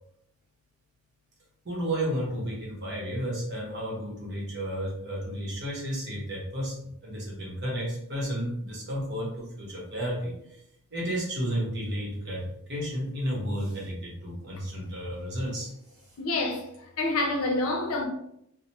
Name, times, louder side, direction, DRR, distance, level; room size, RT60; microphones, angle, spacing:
voice 1, 1.6-10.6 10.9-15.7, equal, 50° right, 0.9 m, -32 dB
voice 2, 16.2-16.6 17.0-18.1, left 2 dB, 80° left, 0.5 m, -27 dB
2.9 x 2.0 x 2.9 m
head